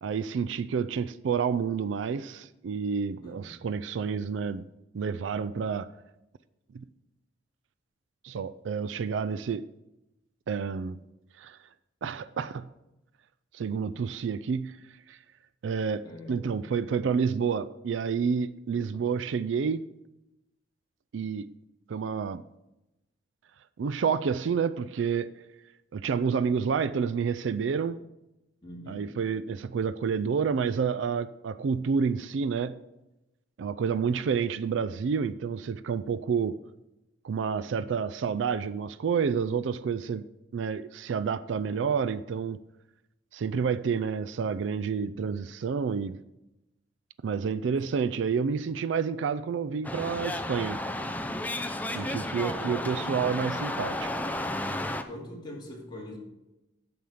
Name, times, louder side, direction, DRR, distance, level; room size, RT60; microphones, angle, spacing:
voice 1, 0.0-4.7 4.9-5.9 6.7-6.8 8.2-9.7 10.5-11.0 11.4-11.6 12.0-12.7 13.5-14.8 15.1-15.2 15.6-19.9 21.1-21.5 21.9-22.4 23.8-25.3 25.9-28.0 28.9-32.8 33.6-36.6 37.2-42.6 43.3-46.2 47.2-50.8 51.9-54.3, right 6 dB, 90° right, 0.4 m, -29 dB
voice 2, 16.0-16.5 28.6-29.1 52.0-53.3 55.0-56.2, left 1 dB, 25° left, 2.4 m, -42 dB
sound 1, 49.8-55.0, left 1 dB, 10° left, 0.5 m, -33 dB
9.4 x 7.1 x 4.9 m
head